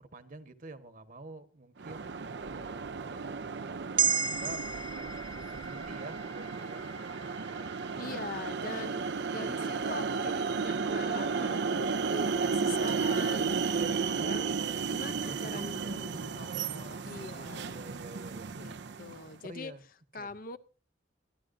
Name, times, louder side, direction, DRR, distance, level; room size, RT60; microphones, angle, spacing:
voice 1, 0.0-4.7 4.9-6.9 7.3-8.2 15.0-18.8 19.5-19.8 20.2-20.3, right 2 dB, 50° right, 10 dB, 1.3 m, -49 dB
sound 1, 1.8-19.3, right 5 dB, 65° right, 0.6 m, -33 dB
sound 2, 4.0-8.5 8.9-9.0, right 7 dB, 30° right, 0.6 m, -34 dB
voice 2, 8.0-9.0 9.3-14.5 14.9-17.9 18.6-19.7 20.1-20.6, left 3 dB, 50° left, 13 dB, 0.7 m, -43 dB
26.5 x 11.0 x 2.6 m, 0.35 s
head